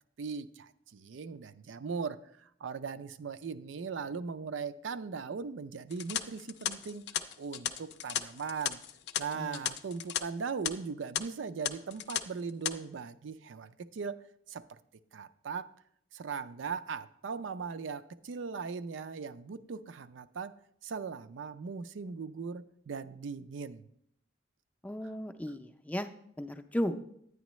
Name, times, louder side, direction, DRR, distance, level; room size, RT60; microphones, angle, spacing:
voice 1, 0.2-7.0 7.4-8.8 9.2-14.8 15.1-15.7 16.1-20.6 20.8-23.9 25.5-25.6, right 5 dB, 90° right, 11 dB, 0.4 m, -39 dB
sound 1, 5.9-10.2 10.5-10.7 11.1-11.2 11.6-12.2 12.5-12.7, left 9 dB, 60° left, 0.5 m, -35 dB
voice 2, 24.8-26.1 26.4-27.0, equal, 10° left, 7 dB, 0.4 m, -35 dB
9.6 x 9.3 x 3.1 m, 0.70 s
head